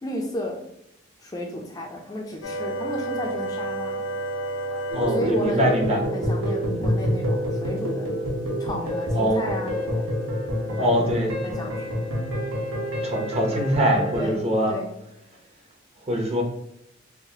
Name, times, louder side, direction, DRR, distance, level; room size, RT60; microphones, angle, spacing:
voice 1, 0.0-0.6 1.2-4.0 5.1-5.8 6.1-8.2 8.6-10.1 10.7-11.1 11.4-12.0 14.1-14.9, left 1 dB, 20° left, 0 dB, 0.4 m, -33 dB
sound 1, 2.4-5.7, right 1 dB, 75° left, 0.4 m, -31 dB
voice 2, 4.9-6.0 6.8-6.9 9.1-9.4 10.8-11.3 13.0-14.7 16.1-16.4, equal, 30° right, 1 dB, 0.8 m, -23 dB
sound 2, 4.9-14.3, equal, 90° right, 1.1 m, -27 dB
4.6 x 2.0 x 2.8 m, 0.79 s
head